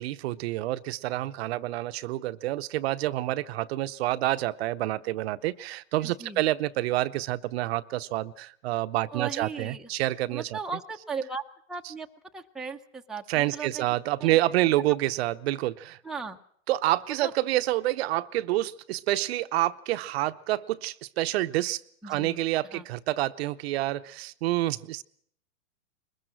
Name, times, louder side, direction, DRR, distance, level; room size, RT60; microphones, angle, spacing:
voice 1, 0.0-10.6 13.3-16.0 16.7-25.0, right 16 dB, 50° right, 11 dB, 0.8 m, -28 dB
voice 2, 6.0-6.4 9.1-9.9 10.3-11.4 11.7-12.1 12.3-13.8 14.2-14.3 16.0-16.4 17.2-17.3 22.0-22.4 22.7-22.8, right 5 dB, ahead, 2 dB, 0.8 m, -37 dB
21.5 x 20.5 x 6.3 m, 0.65 s
hypercardioid pair, 115°, 40 cm